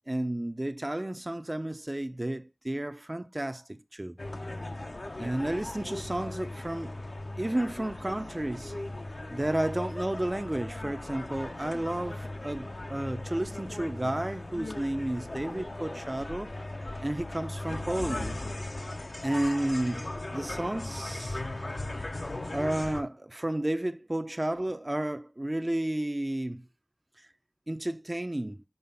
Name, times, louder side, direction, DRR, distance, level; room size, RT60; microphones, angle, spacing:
voice 1, 0.1-4.1 5.2-6.9 7.4-8.7 9.3-16.5 17.0-18.4 19.2-21.4 22.5-26.6 27.2-27.3 27.7-28.6, right 1 dB, 35° right, 0.5 m, -32 dB
sound 1, 4.2-23.0, left 2 dB, 70° left, 0.8 m, -38 dB
5.5 x 4.2 x 5.6 m
wide cardioid pair, 45°, 0 cm